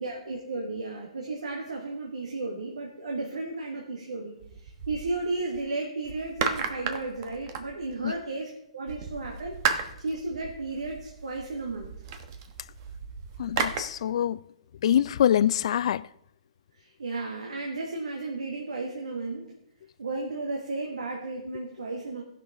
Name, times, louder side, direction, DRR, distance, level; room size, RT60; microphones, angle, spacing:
voice 1, 0.0-11.9 16.8-19.5 20.0-22.2, right 3 dB, 85° right, 1.5 m, -34 dB
sound 1, 4.4-5.6 6.0-8.2 8.9-13.8, right 6 dB, 45° right, 1.1 m, -34 dB
voice 2, 13.4-14.4 14.8-16.1, left 10 dB, 60° left, 0.3 m, -24 dB
16.0 x 6.0 x 3.5 m
hypercardioid pair, 130°, 3 cm